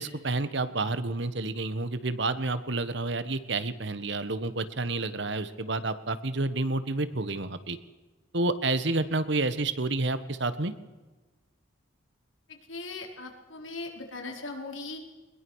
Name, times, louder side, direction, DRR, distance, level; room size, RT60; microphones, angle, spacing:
voice 1, 0.0-7.8 8.3-10.7, right 2 dB, 60° right, 13 dB, 1.3 m, -29 dB
voice 2, 12.5-15.0, left 3 dB, 75° left, 2 dB, 4.4 m, -39 dB
22.0 x 21.0 x 6.4 m, 1.2 s
head